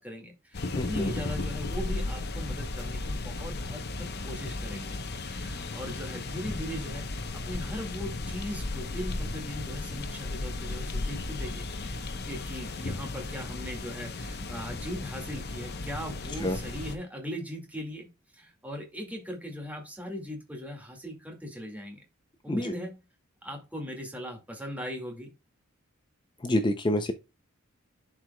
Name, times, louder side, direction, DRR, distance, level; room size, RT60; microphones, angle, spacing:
voice 1, 0.0-5.0 5.2-12.0 12.2-22.0 22.4-23.0 23.4-25.3 26.4-26.6, equal, 5° right, 2.0 m, -39 dB
sound 1, 0.5-16.9, left 2 dB, 50° left, 0.8 m, -35 dB
voice 2, 0.8-1.1 16.4-16.6 22.5-22.7 26.4-27.1, left 1 dB, 20° left, 0.5 m, -27 dB
11.5 x 4.7 x 2.2 m
head